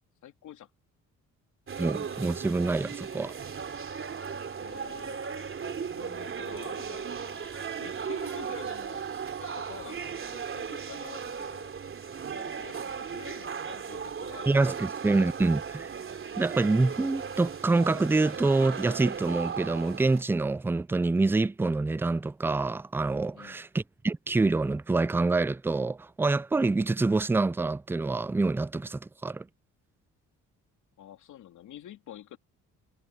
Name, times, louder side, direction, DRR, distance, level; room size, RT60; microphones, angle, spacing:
voice 1, 0.2-0.7 4.6-7.4 7.8-9.1 9.4-11.7 12.2-14.8 23.3-23.6 31.0-32.4, left 11 dB, 75° left, 2.9 m, -48 dB
sound 1, 1.7-20.2, right 6 dB, 45° right, 3.2 m, -37 dB
voice 2, 1.8-3.4 14.5-15.9 16.4-29.4, right 3 dB, 10° right, 0.4 m, -26 dB
cardioid pair, 90°, 30 cm